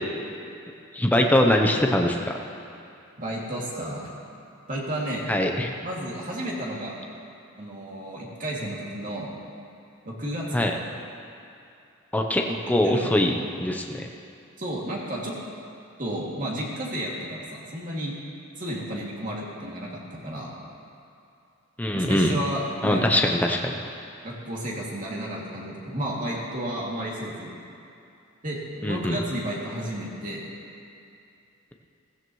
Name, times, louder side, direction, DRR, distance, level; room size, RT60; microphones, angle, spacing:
voice 1, 0.9-2.4 5.3-5.7 10.5-10.7 12.1-14.1 21.8-22.4 22.8-23.7 28.8-29.2, left 1 dB, 10° left, 2 dB, 0.7 m, -22 dB
voice 2, 3.2-4.0 4.7-5.3 5.8-7.0 7.6-9.3 10.0-10.8 12.4-12.6 12.8-13.2 14.6-15.3 16.0-18.1 18.6-20.5 21.9-23.4 24.2-27.5 28.4-30.5, right 1 dB, 40° right, -4 dB, 2.5 m, -32 dB
17.0 x 15.5 x 3.1 m, 2.6 s
head